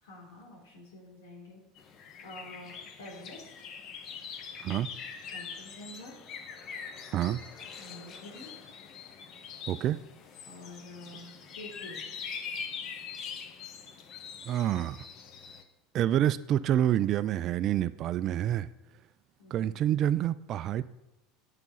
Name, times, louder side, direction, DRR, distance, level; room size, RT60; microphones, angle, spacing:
voice 1, 0.0-1.6 2.2-3.6 5.3-6.1 7.8-8.5 10.4-12.0 19.4-19.7, left 1 dB, 85° left, -2 dB, 3.2 m, -48 dB
sound 1, 1.8-15.6, left 6 dB, 50° left, 1.0 m, -43 dB
voice 2, 9.7-10.0 14.5-15.0 15.9-18.7 19.5-20.8, right 11 dB, 45° right, 13 dB, 0.3 m, -27 dB
8.2 x 5.8 x 5.5 m, 0.94 s
hypercardioid pair, 100°, 0 cm